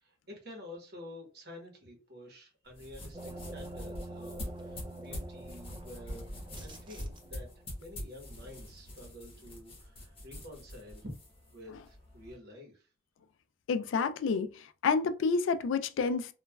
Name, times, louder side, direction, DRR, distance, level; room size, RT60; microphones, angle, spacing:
voice 1, 0.0-6.3 6.6-7.5 7.8-11.1 11.5-12.8, left 1 dB, 55° right, 1.0 m, -49 dB
sound 1, 2.7-12.3, left 1 dB, 30° left, 1.0 m, -45 dB
sound 2, 3.1-7.7, right 1 dB, 25° right, 0.3 m, -46 dB
voice 2, 13.7-14.5 14.8-16.3, left 5 dB, 80° left, 0.3 m, -29 dB
3.0 x 2.2 x 2.2 m
head